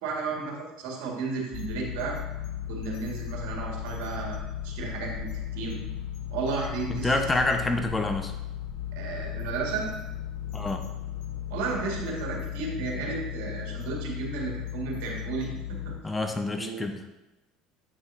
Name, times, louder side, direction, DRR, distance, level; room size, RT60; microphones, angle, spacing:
voice 1, 0.0-2.2 2.7-4.4 4.6-5.8 6.3-7.2 8.9-9.9 10.6-10.7 11.5-15.9 16.5-16.9, right 4 dB, 70° right, -1 dB, 1.9 m, -33 dB
sound 1, 1.5-16.0, left 10 dB, 65° left, 0.9 m, -36 dB
voice 2, 6.9-8.3 10.5-10.8 16.0-17.0, left 2 dB, 15° left, 5 dB, 0.9 m, -27 dB
8.0 x 6.1 x 2.7 m, 0.99 s
hypercardioid pair, 75°, 0 cm